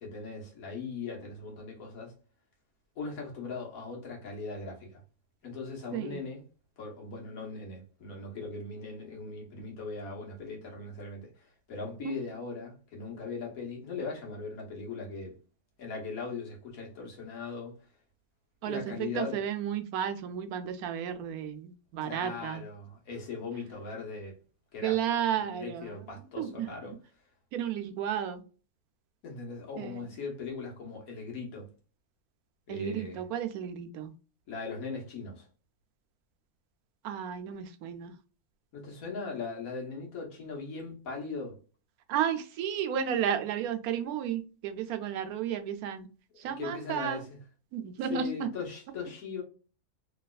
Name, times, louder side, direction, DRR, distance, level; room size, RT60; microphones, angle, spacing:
voice 1, 0.0-2.2 3.0-5.0 5.4-6.4 6.8-15.4 15.8-17.8 18.6-19.5 22.0-24.3 24.7-25.0 25.4-27.0 29.2-31.7 32.7-33.2 34.5-35.5 38.7-41.6 46.3-47.4 48.1-49.4, left 4 dB, 75° left, 1.6 m, -39 dB
voice 2, 18.6-22.6 24.8-25.9 26.4-26.7 27.5-28.4 29.8-30.0 32.7-34.1 37.0-38.1 42.1-46.1 46.4-47.2 47.7-48.5, right 9 dB, 85° right, 1.1 m, -33 dB
3.3 x 2.9 x 2.3 m
omnidirectional pair, 1.5 m